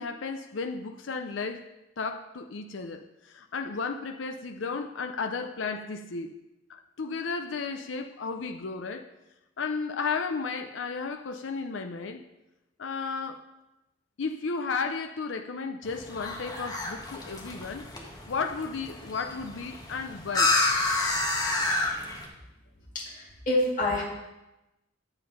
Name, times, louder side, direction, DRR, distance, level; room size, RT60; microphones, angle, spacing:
voice 1, 0.0-1.7 2.0-6.3 6.7-9.1 9.6-12.2 12.8-13.5 14.2-17.9 18.3-20.6, left 4 dB, 90° left, 0.6 m, -34 dB
sound 1, 15.8-22.3, left 2 dB, 20° left, 1.4 m, -30 dB
voice 2, 21.6-22.0 22.9-24.0, left 1 dB, 45° left, 2.1 m, -28 dB
9.8 x 7.6 x 5.4 m
head